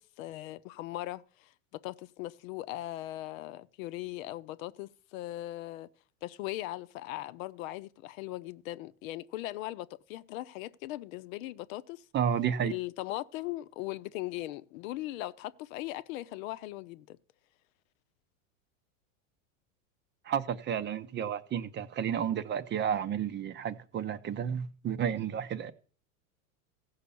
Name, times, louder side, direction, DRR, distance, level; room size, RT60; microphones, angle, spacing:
voice 1, 0.0-5.9 6.2-12.0 12.6-17.2, left 16 dB, 65° left, 0.8 m, -39 dB
voice 2, 12.1-12.7 20.2-25.7, right 8 dB, 25° right, 0.7 m, -31 dB
15.0 x 5.7 x 6.9 m
supercardioid pair, 125°, 43 cm